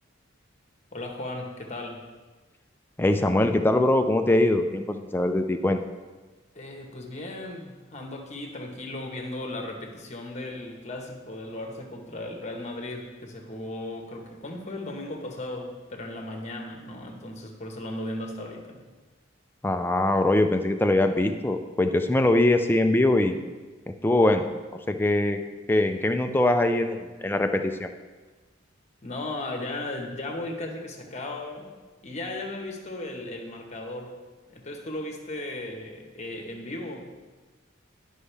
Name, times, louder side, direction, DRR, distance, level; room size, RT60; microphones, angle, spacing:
voice 1, 0.9-2.0 6.5-18.8 29.0-31.7 32.0-34.2 34.5-37.1, left 1 dB, 35° left, 2 dB, 1.1 m, -36 dB
voice 2, 3.0-5.8 19.6-23.4 24.0-24.5 24.9-25.4 25.7-27.9, left 1 dB, 10° left, 6 dB, 0.4 m, -22 dB
11.5 x 5.3 x 3.4 m, 1.3 s
head